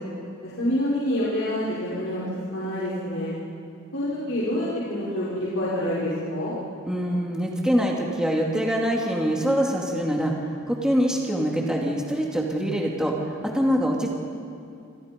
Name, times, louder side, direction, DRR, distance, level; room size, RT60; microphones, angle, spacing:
voice 1, 0.4-2.2 2.5-3.3 3.9-6.5, left 1 dB, 80° left, -9 dB, 5.7 m, -27 dB
voice 2, 6.9-10.3 10.7-13.1 13.4-14.1, equal, 5° right, -2 dB, 2.6 m, -24 dB
28.5 x 27.5 x 5.4 m, 2.6 s
head